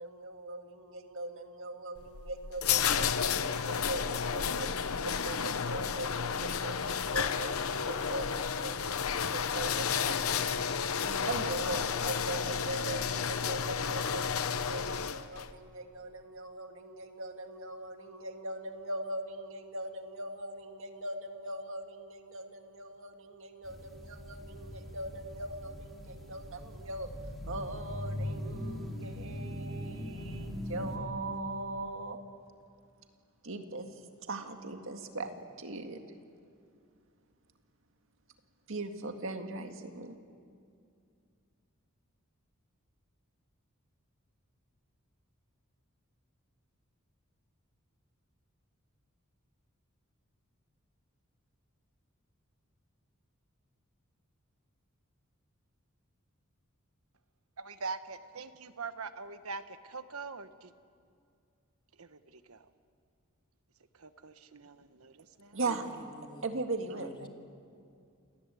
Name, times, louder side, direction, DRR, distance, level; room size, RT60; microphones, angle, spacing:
voice 1, 0.0-10.6 11.0-27.1 27.5-32.2 33.4-34.0 34.3-36.0 38.7-40.2 65.5-65.8 66.4-67.3, right 2 dB, 65° right, 2.0 m, -40 dB
sound 1, 2.0-15.5, left 7 dB, 90° left, 0.9 m, -32 dB
sound 2, 23.6-31.0, equal, ahead, 3.8 m, -41 dB
voice 2, 57.6-60.7 62.0-62.7 63.9-65.6, right 4 dB, 90° right, 1.2 m, -43 dB
voice 3, 65.7-66.5 67.0-67.3, left 1 dB, 25° left, 2.2 m, -48 dB
28.0 x 19.5 x 8.3 m
head